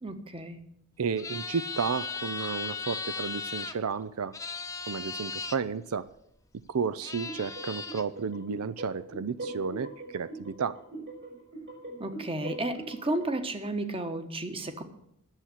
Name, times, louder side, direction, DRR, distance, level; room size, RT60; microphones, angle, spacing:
voice 1, 0.0-0.6 12.0-14.8, right 1 dB, 25° right, 8 dB, 1.2 m, -33 dB
voice 2, 1.0-4.3 4.9-6.1 6.7-10.8, right 6 dB, 85° right, 15 dB, 0.5 m, -32 dB
sound 1, 1.2-3.7 4.3-5.6 6.6-6.7 7.0-8.0, left 4 dB, 15° left, 0.6 m, -37 dB
sound 2, 7.2-13.4, right 2 dB, 60° right, 5.4 m, -42 dB
11.0 x 7.3 x 9.8 m, 0.74 s
head